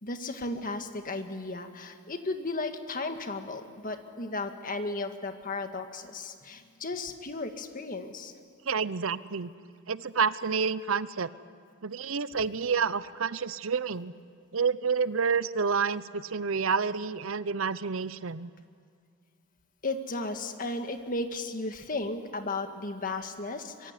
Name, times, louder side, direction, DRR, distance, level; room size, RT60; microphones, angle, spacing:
voice 1, 0.0-8.3 19.8-23.9, left 2 dB, 40° left, 6 dB, 1.8 m, -35 dB
voice 2, 8.7-9.5 9.9-11.3 11.8-14.1 14.5-18.5, right 5 dB, 65° right, 16 dB, 0.7 m, -29 dB
25.0 x 23.0 x 9.7 m, 2.2 s
head